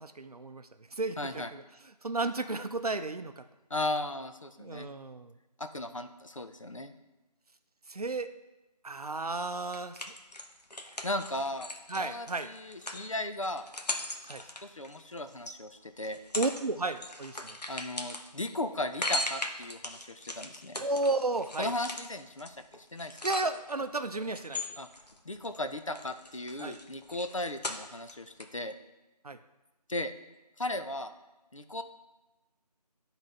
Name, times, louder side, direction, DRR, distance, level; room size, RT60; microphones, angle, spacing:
voice 1, 0.0-1.6 2.0-3.4 4.6-5.3 7.9-8.3 8.8-10.0 10.8-11.0 11.9-12.5 14.2-14.4 16.3-17.6 20.8-21.7 23.2-24.6 26.6-26.8 29.2-29.4, right 3 dB, 65° right, 10 dB, 0.5 m, -33 dB
voice 2, 1.2-1.5 3.7-4.9 5.6-6.9 11.0-13.7 14.6-16.2 17.7-20.8 21.6-23.2 24.8-24.9 25.3-28.7 29.9-30.1 30.6-31.1 31.5-31.8, left 1 dB, 50° left, 8 dB, 0.6 m, -36 dB
sound 1, 9.7-15.6 16.0-16.6 16.9-23.8 24.3-25.6 25.9-28.1 28.4-28.5, left 1 dB, 75° left, 1.0 m, -38 dB
10.0 x 4.0 x 4.1 m, 1.1 s
figure-of-eight pair, 165°, 21 cm